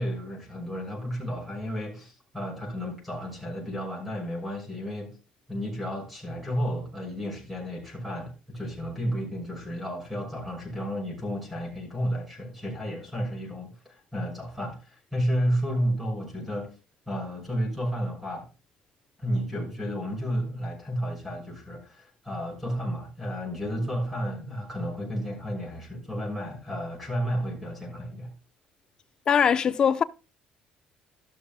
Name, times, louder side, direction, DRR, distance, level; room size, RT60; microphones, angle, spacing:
voice 1, 0.0-5.2 5.5-16.7 17.1-18.5 19.2-28.3, equal, 5° right, 5.9 m, -32 dB
voice 2, 29.3-30.0, left 7 dB, 30° left, 0.7 m, -21 dB
13.5 x 12.5 x 2.2 m
cardioid pair, 170°, 3 cm